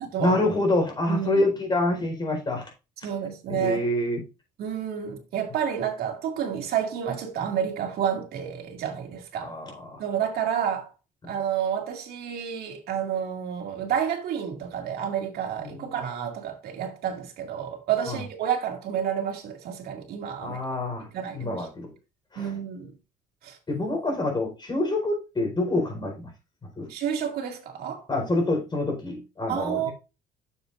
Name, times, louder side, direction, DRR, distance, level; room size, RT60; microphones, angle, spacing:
voice 1, 0.2-2.7 3.5-4.2 9.4-10.0 15.6-15.8 18.1-18.2 20.4-21.1 21.3-21.9 22.3-22.6 23.7-26.3 26.8-26.9 28.1-29.9, left 2 dB, 25° left, 4.5 m, -26 dB
voice 2, 1.1-1.5 3.0-3.8 4.6-9.5 10.0-10.9 11.3-20.6 21.1-21.7 22.4-22.9 23.4-23.6 26.9-28.0 29.5-29.9, right 8 dB, 65° right, 2.4 m, -30 dB
9.6 x 7.3 x 2.5 m
cardioid pair, 110°, 17 cm